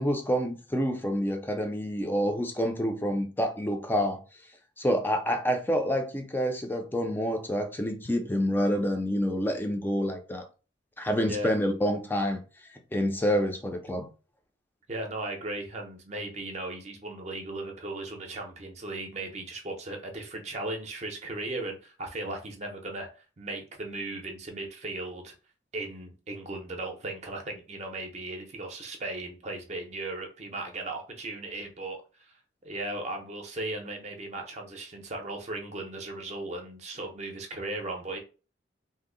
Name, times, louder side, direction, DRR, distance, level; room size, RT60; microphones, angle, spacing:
voice 1, 0.0-4.2 4.8-10.4 11.0-12.4 12.9-14.1, equal, 10° left, 0.4 m, -28 dB
voice 2, 11.2-11.5 14.9-23.1 23.4-25.3 25.7-32.3 32.6-38.2, right 2 dB, 40° right, 0.5 m, -37 dB
2.6 x 2.0 x 3.7 m
head